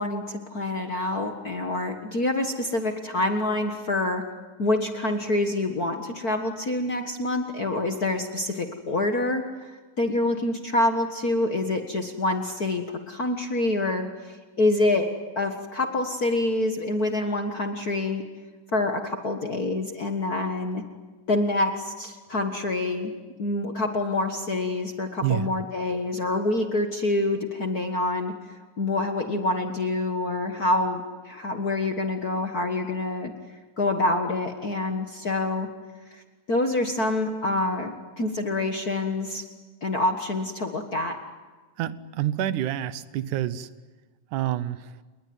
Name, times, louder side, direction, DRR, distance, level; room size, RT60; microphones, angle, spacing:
voice 1, 0.0-4.2 4.6-15.1 15.3-18.2 18.7-20.8 21.3-23.1 23.4-28.3 28.8-33.3 33.8-35.7 36.1-36.2 36.5-39.4 39.8-41.2, left 2 dB, 45° left, 5 dB, 1.3 m, -26 dB
voice 2, 41.8-43.7 44.3-44.9, right 12 dB, 75° right, 14 dB, 2.3 m, -28 dB
30.0 x 20.0 x 9.5 m, 1.3 s
omnidirectional pair, 3.8 m